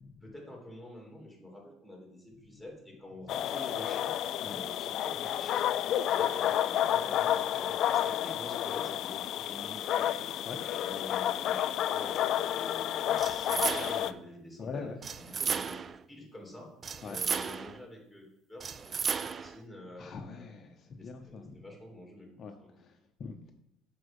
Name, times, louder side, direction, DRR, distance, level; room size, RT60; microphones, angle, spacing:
voice 1, 0.2-4.1 4.4-10.2 10.8-11.6 11.9-14.9 15.2-15.8 16.1-16.7 17.0-20.6 21.0-22.8, left 1 dB, ahead, 0 dB, 2.9 m, -48 dB
sound 1, 3.3-14.1, left 11 dB, 55° left, 0.4 m, -30 dB
sound 2, 13.2-14.2 15.0-16.0 16.8-17.8 18.6-19.6, right 6 dB, 30° right, 0.3 m, -34 dB
voice 2, 14.6-15.0 17.0-17.2 20.0-21.6 22.4-23.5, left 5 dB, 40° left, 4 dB, 0.7 m, -43 dB
7.6 x 5.8 x 5.3 m, 0.80 s
cardioid pair, 115°, 0 cm